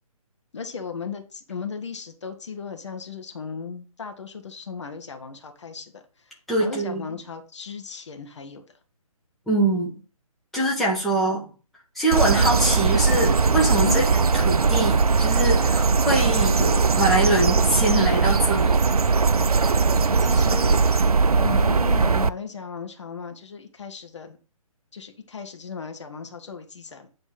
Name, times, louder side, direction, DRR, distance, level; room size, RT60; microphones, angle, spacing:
voice 1, 0.5-6.0 6.6-8.6 13.8-14.0 20.1-20.7 21.4-24.4 24.9-27.1, left 5 dB, 50° left, 6 dB, 1.2 m, -36 dB
voice 2, 6.5-7.0 9.5-9.9 10.5-11.5 11.9-14.0 14.3-18.8, right 2 dB, ahead, -6 dB, 1.5 m, -24 dB
sound 1, 12.1-22.3, right 4 dB, 80° right, 0.4 m, -20 dB
8.5 x 3.3 x 5.6 m, 0.36 s
figure-of-eight pair, 140°, 19 cm